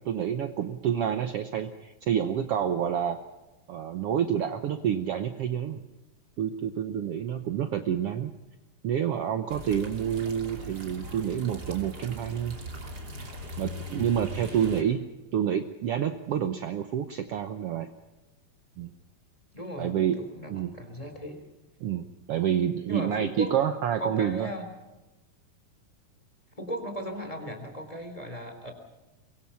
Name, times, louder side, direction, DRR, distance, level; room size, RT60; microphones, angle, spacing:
voice 1, 0.0-3.2 3.7-5.8 6.4-8.3 8.8-12.6 13.6-15.0 15.3-17.9 18.8-18.9 19.8-20.2 20.5-20.8 21.8-24.5, right 9 dB, 75° right, 8 dB, 1.3 m, -28 dB
sound 1, 9.5-14.8, equal, 30° right, 3.0 m, -40 dB
voice 2, 14.4-14.9 19.5-21.4 22.9-23.5 24.0-24.6 26.6-28.7, equal, 10° left, 5 dB, 3.2 m, -37 dB
24.0 x 22.5 x 5.8 m, 1.1 s
omnidirectional pair, 4.0 m